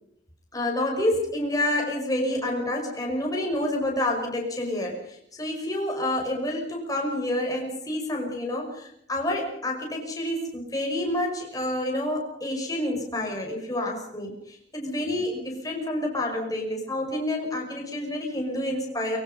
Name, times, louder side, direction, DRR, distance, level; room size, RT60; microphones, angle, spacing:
voice 1, 0.5-19.2, left 1 dB, 20° left, 0 dB, 5.7 m, -28 dB
24.0 x 22.5 x 5.6 m, 0.72 s
head